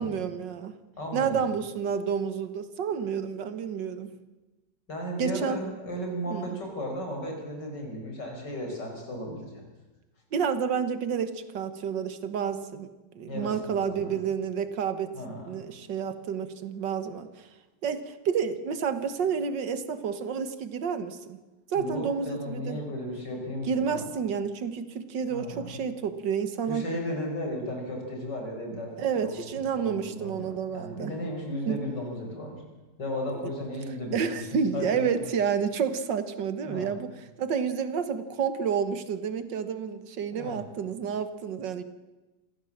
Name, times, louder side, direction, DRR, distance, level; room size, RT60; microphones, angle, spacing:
voice 1, 0.0-0.8 1.1-4.1 5.2-5.7 6.3-6.6 10.3-12.9 13.2-15.1 15.5-17.5 17.8-21.4 21.7-22.8 23.6-26.9 29.0-31.1 31.7-31.8 34.1-37.1 37.4-41.8, right 7 dB, 80° right, 12 dB, 2.0 m, -30 dB
voice 2, 1.0-1.4 4.9-9.6 13.3-14.2 15.1-15.6 21.7-24.0 25.3-25.8 26.7-29.3 29.8-32.6 33.0-34.2 34.5-35.3 36.6-36.9 40.3-40.6, equal, 70° left, 1 dB, 5.5 m, -35 dB
26.5 x 15.0 x 7.3 m, 1.1 s
omnidirectional pair, 1.9 m